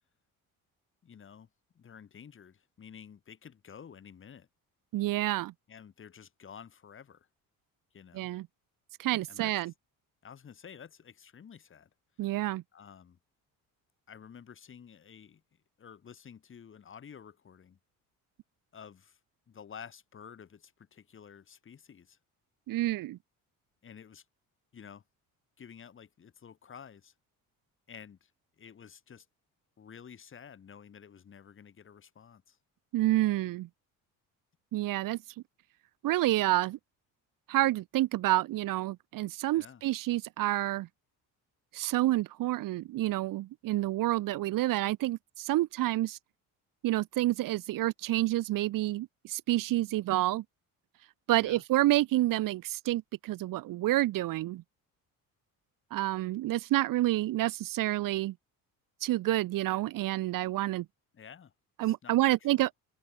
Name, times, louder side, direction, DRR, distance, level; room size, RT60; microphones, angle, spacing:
voice 1, 1.0-1.5 1.7-4.5 5.7-7.3 7.9-8.3 9.3-9.5 10.2-11.9 12.7-13.2 14.1-15.4 15.8-17.8 18.7-19.2 19.5-22.2 23.8-24.2 24.7-25.0 25.6-27.1 27.9-28.3 28.6-29.3 29.8-32.6 39.5-39.8 51.3-51.6 61.1-61.5 61.8-62.6, left 7 dB, 35° left, 5.8 m, -51 dB
voice 2, 4.9-5.5 8.1-8.5 9.0-9.7 12.2-12.6 22.7-23.2 32.9-33.7 34.7-35.2 36.0-36.8 37.5-40.9 41.7-46.2 46.8-50.4 51.3-54.6 55.9-58.3 59.0-60.8 61.8-62.7, right 16 dB, 65° right, 1.2 m, -28 dB
cardioid pair, 145°, 35 cm